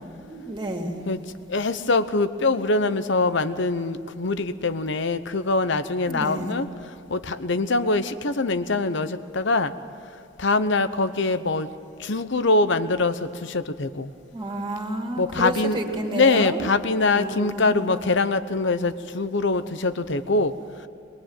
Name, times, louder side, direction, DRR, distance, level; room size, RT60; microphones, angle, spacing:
voice 1, 0.2-1.0 6.0-6.5 14.3-16.6 17.0-17.9, right 1 dB, 25° right, 1 dB, 2.9 m, -30 dB
voice 2, 1.5-6.7 7.1-9.7 10.4-11.7 12.0-14.1 15.2-20.5, left 3 dB, 60° left, 12 dB, 1.0 m, -23 dB
23.0 x 22.5 x 9.0 m, 2.7 s
head